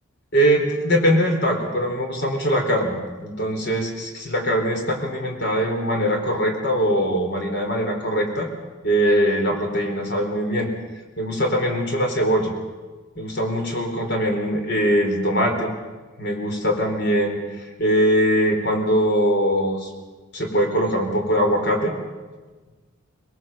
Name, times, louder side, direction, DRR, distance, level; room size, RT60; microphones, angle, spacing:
voice 1, 0.3-2.9 3.2-8.5 8.8-10.7 11.2-12.5 13.2-15.7 16.2-17.4 17.8-19.9 20.3-21.9, equal, 50° left, 3 dB, 4.4 m, -21 dB
23.0 x 21.5 x 7.5 m, 1.3 s
head